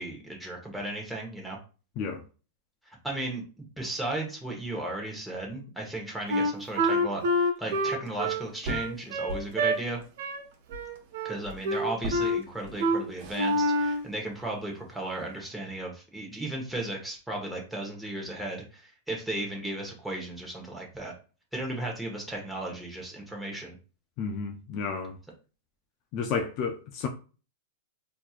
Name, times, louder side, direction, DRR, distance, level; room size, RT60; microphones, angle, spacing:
voice 1, 0.0-1.6 2.9-10.0 11.2-21.1 21.5-23.8, right 1 dB, 5° right, 1.2 m, -35 dB
Wind instrument woodwind instrument, 6.3-9.8 10.2-10.4 10.7-11.4 11.6-12.4 12.8-13.0 13.3-14.1, equal, 65° right, 1.0 m, -27 dB
sound 1, 8.3-15.4, equal, 40° right, 1.3 m, -43 dB
voice 2, 24.2-25.2 26.1-27.1, left 5 dB, 40° left, 0.5 m, -31 dB
4.2 x 2.9 x 2.4 m
supercardioid pair, 145°, 0 cm